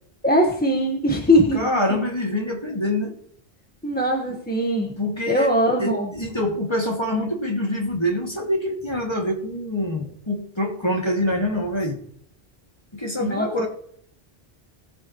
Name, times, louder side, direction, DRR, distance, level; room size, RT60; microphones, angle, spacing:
voice 1, 0.2-2.0 3.8-4.9 5.3-6.1 13.2-13.5, equal, 10° left, 0 dB, 1.5 m, -21 dB
voice 2, 1.5-3.1 5.0-12.0 12.9-13.7, left 1 dB, 25° left, 0 dB, 2.5 m, -25 dB
20.0 x 7.9 x 3.2 m, 0.63 s
omnidirectional pair, 1.1 m